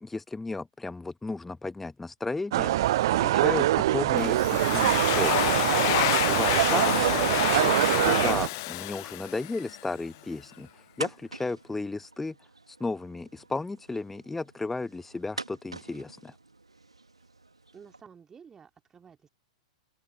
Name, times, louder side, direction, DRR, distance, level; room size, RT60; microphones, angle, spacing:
voice 1, 0.0-5.6 6.3-6.9 7.5-12.3 12.7-16.3, left 3 dB, 5° left, 1.2 m, -34 dB
sound 1, 2.5-8.5, right 15 dB, 50° right, 0.5 m, -24 dB
sound 2, 3.8-18.0, right 3 dB, 80° right, 2.2 m, -47 dB
Domestic sounds home sounds, 4.2-9.8, left 23 dB, 45° left, 0.8 m, -28 dB
voice 2, 17.7-19.3, right 6 dB, 15° right, 2.7 m, -52 dB
open air
figure-of-eight pair, 100°, 3 cm